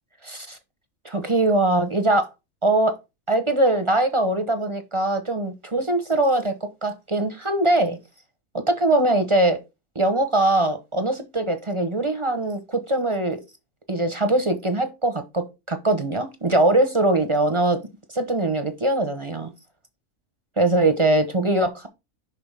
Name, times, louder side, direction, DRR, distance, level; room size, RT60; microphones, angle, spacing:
voice 1, 0.2-0.6 1.0-2.3 2.6-3.0 3.3-6.6 6.8-8.0 8.5-9.6 9.9-13.4 13.9-17.8 18.1-19.5 20.6-21.9, right 2 dB, 30° right, 0.6 m, -22 dB
6.1 x 3.8 x 5.3 m
omnidirectional pair, 1.6 m